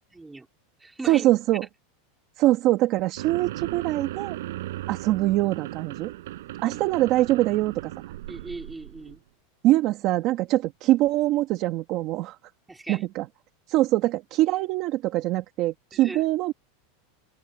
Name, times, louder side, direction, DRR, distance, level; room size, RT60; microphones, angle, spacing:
voice 1, 0.1-0.5 0.8-1.3 6.6-6.8 8.3-9.2 12.7-13.0 15.9-16.2, right 3 dB, 5° right, 4.4 m, -39 dB
voice 2, 1.1-1.7 2.4-4.4 4.9-6.1 6.6-7.9 9.6-12.4 12.9-13.3 13.7-16.5, right 16 dB, 40° right, 1.8 m, -23 dB
sound 1, 3.2-9.2, right 15 dB, 75° right, 6.4 m, -37 dB
supercardioid pair, 160°, 0 cm